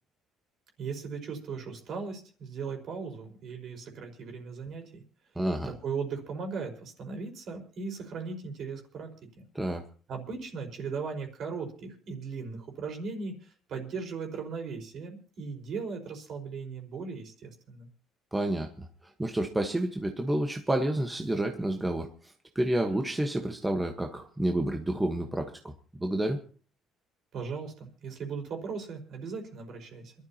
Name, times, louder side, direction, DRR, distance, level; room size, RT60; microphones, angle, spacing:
voice 1, 0.8-5.0 5.6-9.4 10.1-17.9 27.3-30.1, right 5 dB, 50° right, 3 dB, 4.5 m, -38 dB
voice 2, 5.4-5.7 9.5-9.8 18.3-18.7 19.2-22.1 22.5-25.5 26.0-26.4, right 1 dB, 10° right, 3 dB, 1.2 m, -29 dB
27.5 x 12.5 x 2.9 m, 0.39 s
cardioid pair, 130°, 0 cm